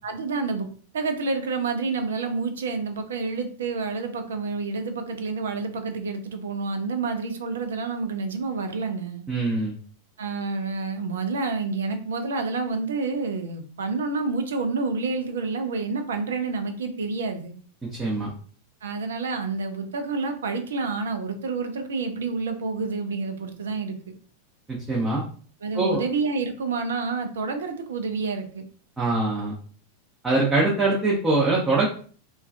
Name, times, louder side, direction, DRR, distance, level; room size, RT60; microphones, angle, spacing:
voice 1, 0.0-0.7 0.9-9.2 10.2-17.6 18.8-24.1 25.6-28.6, right 4 dB, 65° right, 7 dB, 0.4 m, -28 dB
voice 2, 9.3-9.7 18.0-18.3 24.7-25.2 25.7-26.0 29.0-29.6 30.2-31.9, right 2 dB, 15° right, -4 dB, 0.6 m, -23 dB
2.3 x 2.2 x 2.4 m, 0.43 s
figure-of-eight pair, 90°, 0 cm